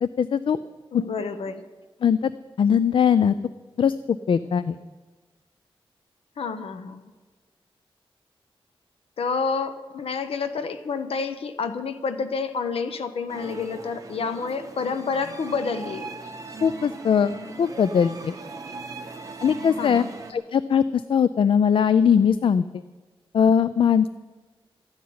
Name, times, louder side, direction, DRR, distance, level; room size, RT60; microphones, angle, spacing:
voice 1, 0.0-0.6 2.0-2.3 2.6-3.3 3.8-4.8 16.6-17.3 17.6-18.3 19.4-20.1 20.3-22.8 23.3-24.1, left 7 dB, 65° left, 14 dB, 0.4 m, -20 dB
voice 2, 0.9-1.6 6.4-7.0 9.2-16.1 19.8-20.1, left 5 dB, 85° left, 9 dB, 1.0 m, -29 dB
sound 1, 13.3-20.3, right 3 dB, 35° right, 1.4 m, -39 dB
14.0 x 9.5 x 9.4 m, 1.3 s
wide cardioid pair, 165°, 10 cm